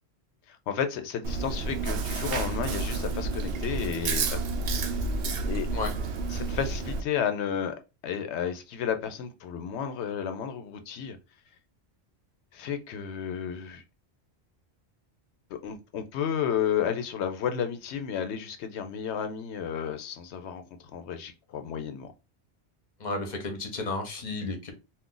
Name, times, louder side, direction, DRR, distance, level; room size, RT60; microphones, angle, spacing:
voice 1, 0.5-4.2 5.4-5.7 6.3-7.7 8.0-11.2 12.5-13.8 15.5-20.6 20.9-22.1, left 8 dB, 85° left, 0.9 m, -32 dB
Chewing mastication, 1.2-7.0, right 3 dB, 65° right, 0.7 m, -30 dB
voice 2, 23.0-24.7, left 3 dB, 45° left, 0.9 m, -32 dB
2.4 x 2.4 x 3.7 m
omnidirectional pair, 1.1 m